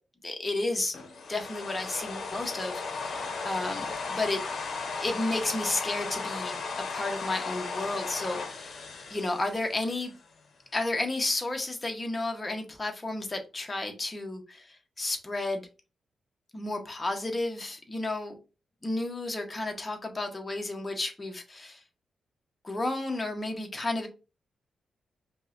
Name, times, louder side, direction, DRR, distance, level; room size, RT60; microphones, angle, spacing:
voice 1, 0.2-1.0 1.3-4.4 5.0-6.6 6.9-8.8 9.1-10.1 10.7-15.7 16.5-18.4 18.8-21.8 22.6-24.1, left 2 dB, 20° left, 0.7 m, -32 dB
sound 1, 0.9-10.2, left 4 dB, 60° left, 0.7 m, -36 dB
5.2 x 2.1 x 2.5 m
wide cardioid pair, 130°, 0 cm